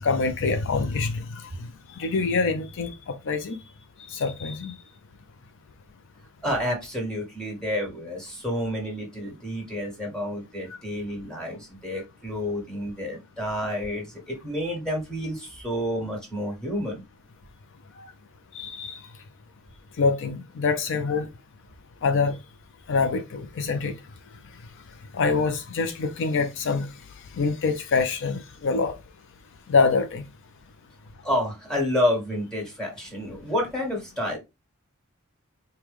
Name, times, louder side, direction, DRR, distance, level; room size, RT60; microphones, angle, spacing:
voice 1, 0.0-1.7 2.0-3.6 4.0-4.7 18.0-18.1 18.5-19.0 20.0-21.3 22.0-22.4 22.9-23.9 25.1-26.9 27.3-29.0 29.7-30.2, left 4 dB, 60° left, 0.5 m, -25 dB
voice 2, 6.4-17.0 31.2-34.4, left 1 dB, 5° left, 1.6 m, -29 dB
4.6 x 2.2 x 3.5 m
head